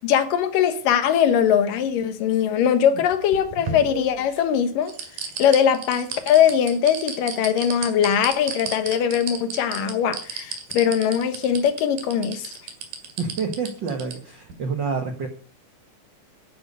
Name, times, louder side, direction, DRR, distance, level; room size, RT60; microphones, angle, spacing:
voice 1, 0.0-4.9 5.4-12.5, left 8 dB, 90° left, 2.8 m, -21 dB
sound 1, 3.1-4.4 4.9-14.1 14.5-14.6, right 5 dB, 85° right, 3.7 m, -32 dB
voice 2, 13.2-15.3, right 5 dB, 55° right, 1.2 m, -28 dB
11.0 x 10.5 x 5.4 m
omnidirectional pair, 3.8 m